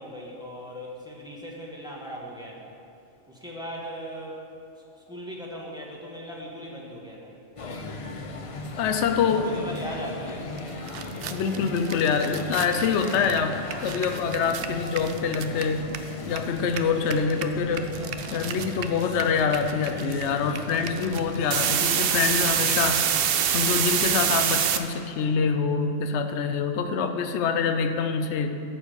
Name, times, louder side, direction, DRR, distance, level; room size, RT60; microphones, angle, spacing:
voice 1, 0.0-2.7 3.3-4.4 4.9-7.4 9.3-10.5, equal, 5° right, -3 dB, 1.4 m, -38 dB
sound 1, 7.6-21.5, left 2 dB, 40° left, 0.5 m, -37 dB
voice 2, 8.8-9.4 11.3-17.9 18.3-23.1 23.5-28.6, left 6 dB, 70° left, 8 dB, 0.9 m, -25 dB
sound 2, 10.6-10.7 10.9-16.4 16.7-24.8, right 8 dB, 60° right, 0.7 m, -26 dB
11.0 x 4.7 x 8.1 m, 2.6 s
omnidirectional pair, 1.3 m